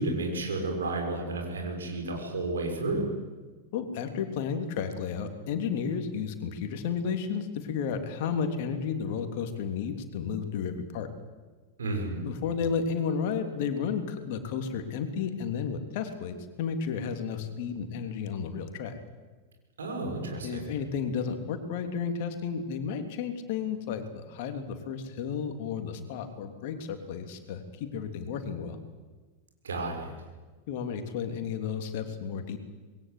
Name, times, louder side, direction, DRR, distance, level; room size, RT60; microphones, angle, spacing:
voice 1, 0.0-3.0 11.8-12.2 19.8-20.7 29.6-30.1, right 2 dB, 70° right, 2 dB, 6.6 m, -32 dB
voice 2, 3.7-11.1 12.2-18.9 20.4-28.8 30.7-32.6, left 6 dB, 50° left, 6 dB, 3.2 m, -32 dB
26.0 x 21.5 x 8.3 m, 1.3 s
figure-of-eight pair, 90°, 0 cm